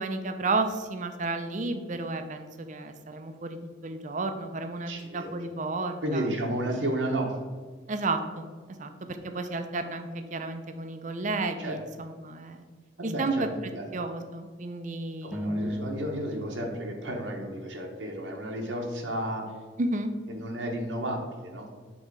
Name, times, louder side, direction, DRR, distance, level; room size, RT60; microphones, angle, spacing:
voice 1, 0.0-6.3 7.9-8.4 8.8-8.9 9.2-12.6 13.0-13.5 13.9-15.6 19.8-20.1, right 3 dB, 40° right, 7 dB, 0.6 m, -32 dB
voice 2, 4.9-5.4 6.0-7.3 11.6-11.7 12.1-12.2 13.0-13.4 13.7-13.9 15.2-19.4 20.3-21.7, right 1 dB, 85° right, 0 dB, 1.2 m, -32 dB
sound 1, 15.3-17.9, equal, 5° right, 0.6 m, -36 dB
7.5 x 3.9 x 4.6 m, 1.5 s
head